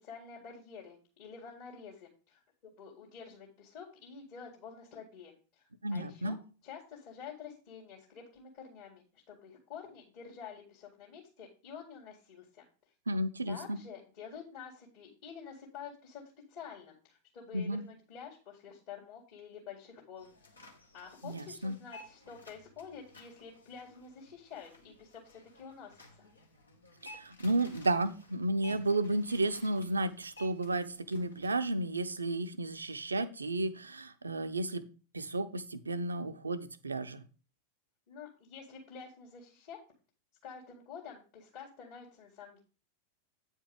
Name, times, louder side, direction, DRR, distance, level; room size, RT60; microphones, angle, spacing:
voice 1, 0.0-2.4 2.7-5.7 5.9-6.4 6.6-12.6 13.5-16.2 16.5-20.3 20.9-26.3 38.1-39.8 40.4-42.6, left 6 dB, 45° left, -3 dB, 1.9 m, -49 dB
voice 2, 5.8-6.4 13.1-13.8 17.5-17.8 21.2-21.8 27.0-34.8 35.1-37.2, right 2 dB, 75° right, 12 dB, 0.6 m, -33 dB
sound 1, 20.2-31.5, left 1 dB, 80° left, 1.6 m, -55 dB
8.9 x 4.6 x 4.9 m, 0.36 s
figure-of-eight pair, 90°, 0 cm